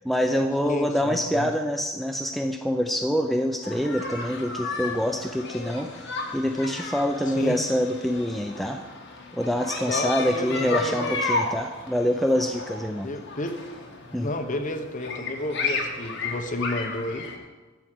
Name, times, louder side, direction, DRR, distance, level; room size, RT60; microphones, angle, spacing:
voice 1, 0.0-6.0 6.3-8.8 9.3-13.1 14.1-14.3, equal, ahead, 4 dB, 0.4 m, -26 dB
voice 2, 0.6-1.5 7.3-7.6 9.9-11.1 13.0-13.6 14.1-17.3, left 1 dB, 40° left, 5 dB, 1.0 m, -31 dB
sound 1, 3.6-17.4, left 3 dB, 60° left, 1.7 m, -33 dB
12.0 x 4.8 x 7.6 m, 1.3 s
head